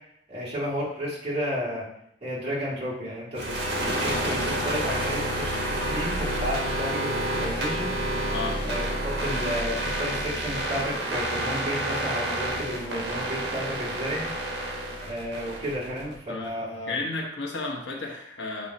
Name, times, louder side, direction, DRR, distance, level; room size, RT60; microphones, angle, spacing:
voice 1, 0.3-1.9 2.2-7.9 8.6-14.3 15.1-17.0, equal, 30° right, -9 dB, 2.5 m, -32 dB
sound 1, 3.3-16.1, right 1 dB, 60° right, 1.4 m, -29 dB
voice 2, 8.3-8.6 16.3-16.6 16.9-18.7, left 3 dB, 70° left, -1 dB, 1.1 m, -33 dB
7.5 x 3.1 x 4.2 m, 0.77 s
head